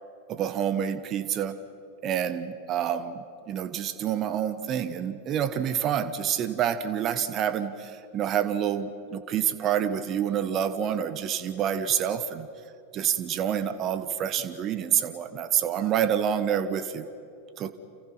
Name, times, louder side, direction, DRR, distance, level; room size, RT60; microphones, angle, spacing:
voice 1, 0.3-1.6 2.0-12.5 12.9-17.1 17.6-17.7, right 9 dB, 30° right, 12 dB, 1.4 m, -28 dB
30.0 x 28.5 x 5.8 m, 2.6 s
figure-of-eight pair, 90°, 0 cm